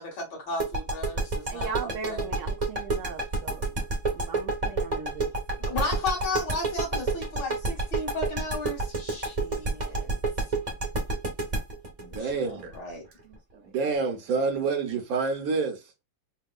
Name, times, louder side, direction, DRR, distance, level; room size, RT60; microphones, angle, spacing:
voice 1, 0.0-2.3 5.6-10.1 12.1-13.0, left 2 dB, 60° left, 2.3 m, -34 dB
sound 1, 0.6-13.3, right 3 dB, 30° right, 0.7 m, -28 dB
voice 2, 1.5-3.7 4.1-5.3 13.3-13.7, right 5 dB, 80° right, 0.7 m, -38 dB
voice 3, 12.0-12.7 13.7-15.8, right 4 dB, 60° right, 1.1 m, -28 dB
4.5 x 2.2 x 2.3 m
omnidirectional pair, 2.2 m